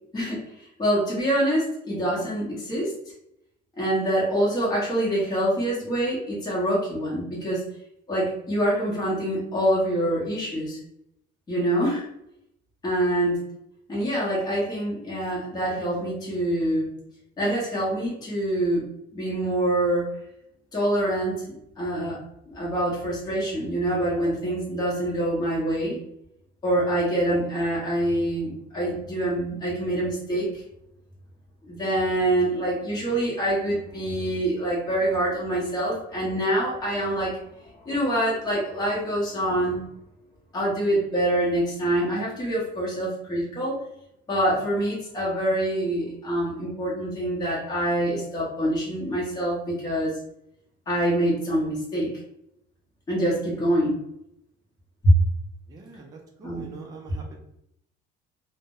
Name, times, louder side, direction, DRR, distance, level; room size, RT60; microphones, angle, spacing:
voice 1, 0.1-2.9 3.8-7.6 8.1-10.8 11.5-12.1 12.8-13.5 13.9-16.9 17.4-18.9 19.1-20.1 20.7-22.2 22.5-26.0 26.6-30.6 31.6-39.8 40.5-43.8 44.3-50.1 50.9-52.1 53.1-54.0 55.0-55.1 56.4-56.7, right 1 dB, 20° left, -6 dB, 0.9 m, -25 dB
voice 2, 55.7-57.4, right 4 dB, 20° right, 0 dB, 0.4 m, -43 dB
2.2 x 2.0 x 3.6 m, 0.78 s
cardioid pair, 160°, 18 cm